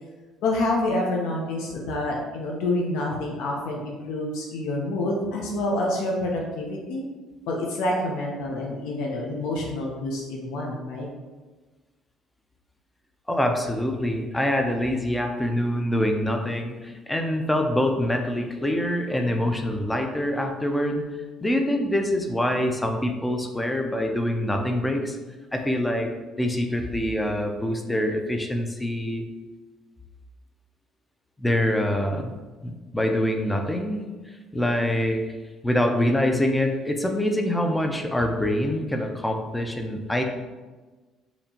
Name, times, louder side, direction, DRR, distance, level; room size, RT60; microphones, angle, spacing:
voice 1, 0.4-7.0 7.5-11.1, left 1 dB, 80° left, -2 dB, 0.6 m, -27 dB
voice 2, 13.3-21.0 21.4-25.2 25.5-26.1 26.4-29.2 31.4-32.3 32.6-34.0 34.5-35.3 35.6-40.2, left 1 dB, 5° left, 4 dB, 0.3 m, -25 dB
4.3 x 2.9 x 2.7 m, 1.3 s
cardioid pair, 170°, 0 cm